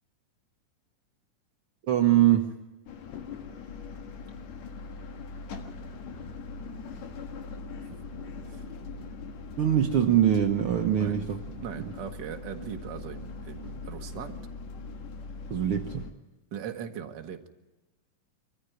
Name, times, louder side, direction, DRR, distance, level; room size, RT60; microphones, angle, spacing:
voice 1, 1.9-2.5 9.6-11.4 11.8-11.9 15.5-16.0, right 11 dB, 70° right, 4 dB, 1.3 m, -23 dB
sound 1, 2.9-16.1, left 4 dB, 60° left, 2.5 m, -41 dB
voice 2, 11.0-14.4 16.5-17.5, right 8 dB, 50° right, 5 dB, 1.4 m, -40 dB
23.5 x 14.5 x 9.2 m, 1.1 s
omnidirectional pair, 3.9 m